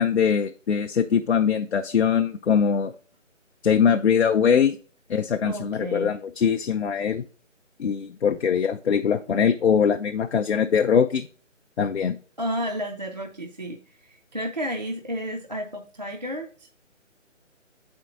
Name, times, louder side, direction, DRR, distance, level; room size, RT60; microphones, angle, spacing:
voice 1, 0.0-2.9 3.6-4.8 5.1-7.2 7.8-11.3 11.8-12.2, left 7 dB, 60° left, 6 dB, 0.5 m, -22 dB
voice 2, 5.4-6.1 12.4-16.7, equal, 35° right, 3 dB, 0.4 m, -32 dB
7.2 x 4.4 x 3.8 m, 0.41 s
figure-of-eight pair, 155°, 38 cm